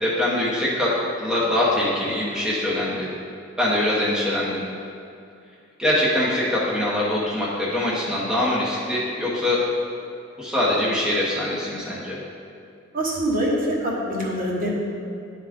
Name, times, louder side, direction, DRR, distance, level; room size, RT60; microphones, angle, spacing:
voice 1, 0.0-3.1 3.6-4.6 5.8-9.6 10.4-12.2, left 1 dB, 5° right, -7 dB, 0.9 m, -23 dB
voice 2, 12.9-14.7, right 1 dB, 45° right, -4 dB, 1.2 m, -24 dB
10.5 x 3.6 x 3.5 m, 2.5 s
head